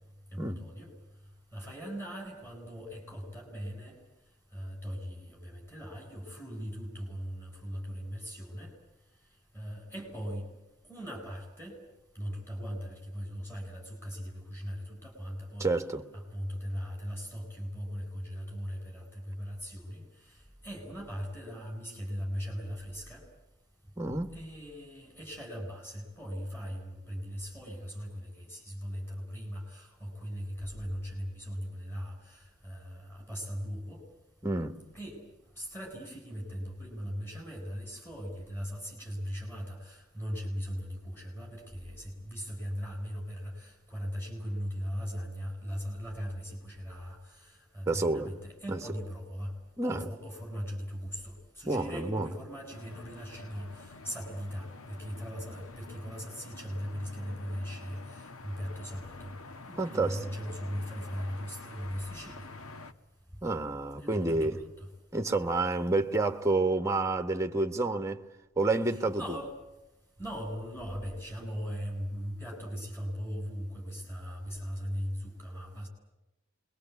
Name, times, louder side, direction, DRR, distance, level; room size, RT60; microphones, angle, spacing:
voice 1, 0.3-0.9 1.5-4.0 4.5-8.7 9.5-10.5 10.9-11.8 12.1-15.7 16.1-23.2 24.3-34.0 34.9-35.2 35.6-49.5 49.8-59.3 59.7-62.5 64.0-64.9 68.9-69.5 70.2-75.9, equal, 10° left, 7.7 m, -39 dB
voice 2, 15.6-16.0 24.0-24.3 34.4-34.8 47.9-48.3 48.7-48.8 49.8-50.1 51.7-52.3 59.8-60.2 63.4-64.6 65.1-68.2 68.6-69.4, right 2 dB, 15° right, 1.5 m, -29 dB
sound 1, 52.7-62.9, left 3 dB, 80° left, 1.4 m, -48 dB
27.0 x 23.0 x 8.4 m
head